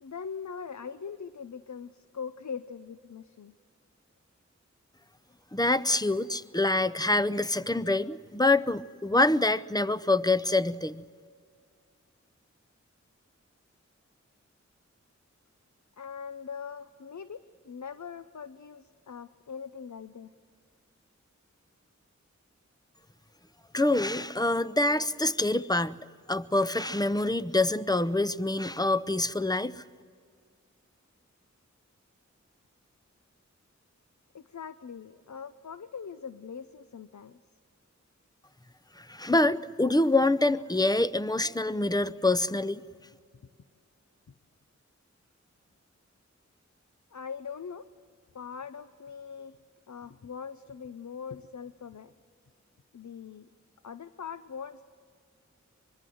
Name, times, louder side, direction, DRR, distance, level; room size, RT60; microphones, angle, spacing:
voice 1, 0.0-3.5 16.0-20.3 34.3-37.4 47.1-47.9 48.3-49.6 49.9-52.1 52.9-53.5 53.8-54.9, left 6 dB, 70° left, 12 dB, 0.6 m, -41 dB
voice 2, 5.5-11.0 23.7-26.0 26.3-29.8 39.0-42.8, left 2 dB, 15° left, 13 dB, 0.6 m, -26 dB
24.5 x 22.0 x 7.8 m, 2.2 s
wide cardioid pair, 45°, 29 cm